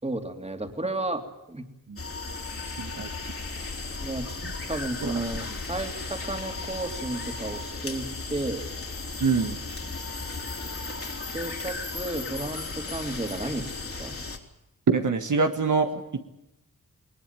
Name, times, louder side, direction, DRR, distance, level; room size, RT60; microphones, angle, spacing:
voice 1, 0.0-1.2 1.5-1.6 4.0-4.3 4.7-8.6 11.3-13.7 14.0-14.1, right 2 dB, 20° right, 5 dB, 3.1 m, -32 dB
sound 1, 2.0-14.4, left 3 dB, 40° left, 3.8 m, -35 dB
voice 2, 2.8-3.1 4.4-4.5 5.0-5.1 9.2-9.6 14.9-16.2, right 4 dB, 65° right, 5 dB, 1.8 m, -25 dB
20.5 x 20.0 x 9.2 m, 0.88 s
wide cardioid pair, 75°, 33 cm